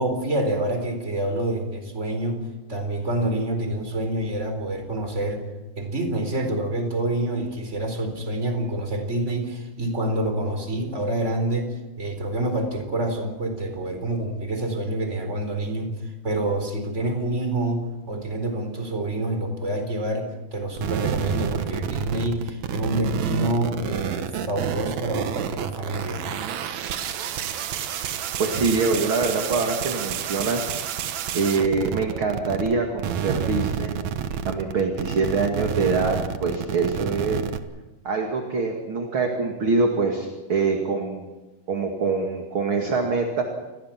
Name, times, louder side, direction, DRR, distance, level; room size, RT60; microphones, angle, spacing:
voice 1, 0.0-2.4 2.7-5.4 5.8-26.2 34.3-34.4, right 1 dB, 20° right, 5 dB, 4.1 m, -27 dB
sound 1, 20.8-32.7 33.0-37.6, right 9 dB, 65° right, 2.0 m, -29 dB
voice 2, 28.4-30.7 31.3-34.0 34.5-37.5 38.0-41.2 41.7-43.4, right 4 dB, 40° right, 2 dB, 2.6 m, -24 dB
29.0 x 21.5 x 6.0 m, 1.1 s
omnidirectional pair, 4.4 m